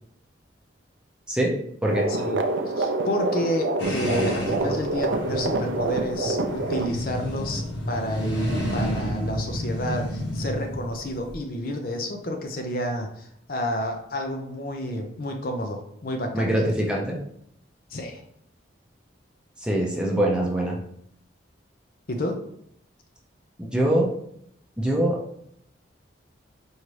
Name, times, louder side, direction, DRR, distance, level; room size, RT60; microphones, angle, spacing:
sound 1, 1.8-6.9, right 2 dB, 75° right, 0.4 m, -27 dB
voice 1, 2.2-16.7 17.9-18.2 22.1-22.4, left 1 dB, 50° left, 3 dB, 0.5 m, -30 dB
sound 2, 3.8-11.3, equal, 75° left, 0.9 m, -31 dB
voice 2, 16.3-17.2 19.6-20.8 23.7-24.1 24.8-25.2, right 1 dB, 5° right, -2 dB, 0.6 m, -23 dB
4.6 x 2.7 x 3.1 m, 0.70 s
head